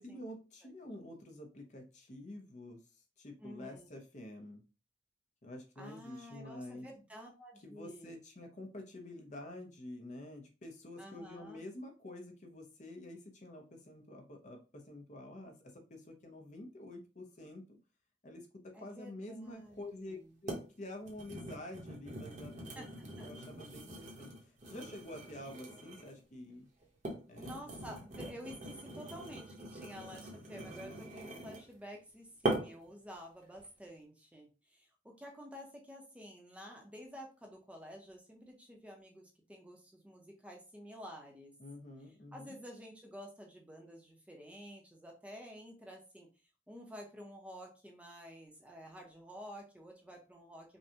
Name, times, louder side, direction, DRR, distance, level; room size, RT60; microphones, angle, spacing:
voice 1, 0.0-2.8 3.2-4.6 5.4-6.9 7.6-17.8 18.2-18.5 18.8-26.7 27.3-27.5 41.6-42.5, left 1 dB, 45° left, 2 dB, 0.9 m, -48 dB
voice 2, 3.4-3.9 5.8-8.2 11.0-11.6 18.7-19.8 20.1-20.4 22.7-22.9 23.2-23.3 27.4-41.5 42.3-46.3 46.7-50.8, equal, 10° right, 0 dB, 0.9 m, -51 dB
sound 1, 19.7-19.8 20.5-20.7 21.0-26.2 26.8-31.7 32.4-32.9 33.4-33.7, right 1 dB, 45° right, 1.1 m, -42 dB
5.4 x 2.3 x 2.9 m, 0.32 s
head